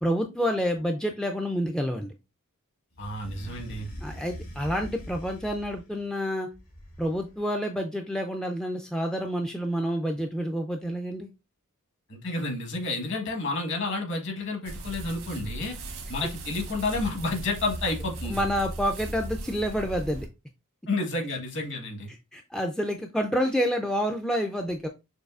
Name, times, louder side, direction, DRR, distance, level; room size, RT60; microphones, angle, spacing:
voice 1, 0.0-2.1 4.0-6.5 7.0-11.3 18.3-20.3 22.3-24.9, equal, 5° left, 3 dB, 0.4 m, -28 dB
sound 1, 2.9-6.0 6.5-7.4, equal, 75° left, 2.0 m, -42 dB
voice 2, 3.0-3.9 12.1-15.8 16.1-18.5 20.9-22.1, left 2 dB, 55° left, 1 dB, 1.4 m, -30 dB
sound 2, 14.7-20.3, right 1 dB, 85° right, 1.2 m, -37 dB
6.3 x 2.7 x 2.4 m, 0.25 s
head